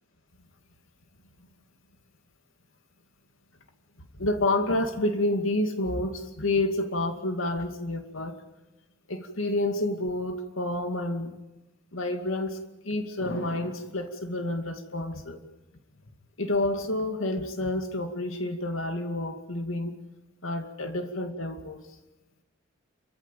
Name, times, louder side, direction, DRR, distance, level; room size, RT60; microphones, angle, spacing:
voice 1, 4.1-8.4 9.1-11.3 11.9-12.6 12.8-15.4 16.4-20.0 20.4-21.8, left 2 dB, 85° left, 6 dB, 2.4 m, -29 dB
28.0 x 14.5 x 9.2 m, 1.0 s
head